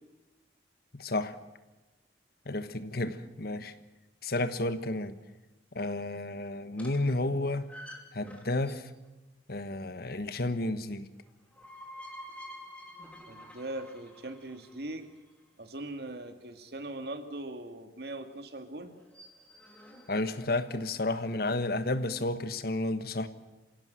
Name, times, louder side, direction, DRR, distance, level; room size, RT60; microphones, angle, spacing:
voice 1, 0.9-1.4 2.4-3.7 4.2-5.2 5.7-7.7 8.1-8.9 9.5-11.1 20.1-23.3, left 2 dB, 60° left, 11 dB, 1.4 m, -31 dB
sound 1, 6.7-9.1 11.3-15.3 18.9-21.2, equal, 10° left, 3.0 m, -50 dB
voice 2, 13.3-15.1 15.6-19.0, right 1 dB, 65° right, 7 dB, 2.2 m, -40 dB
27.0 x 17.0 x 7.8 m, 1.1 s
head